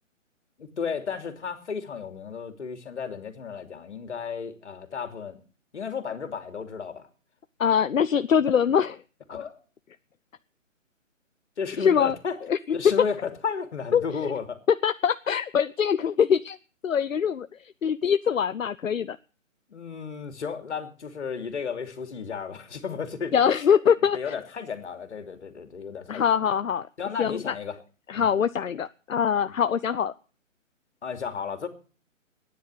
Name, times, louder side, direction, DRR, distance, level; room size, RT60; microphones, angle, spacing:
voice 1, 0.6-5.4 5.7-7.1 9.3-9.6 11.6-12.4 12.7-14.6 19.7-23.3 24.1-26.4 27.0-27.8 28.2-28.3 29.4-29.6 31.0-31.7, left 6 dB, 60° left, 8 dB, 2.9 m, -33 dB
voice 2, 7.6-9.0 11.8-12.1 12.5-12.6 13.9-14.3 14.8-16.6 16.8-19.2 23.3-24.3 26.1-26.9 27.2-27.5 28.1-30.1, left 7 dB, 80° left, 13 dB, 0.8 m, -23 dB
14.0 x 10.0 x 8.0 m, 0.38 s
figure-of-eight pair, 150°, 39 cm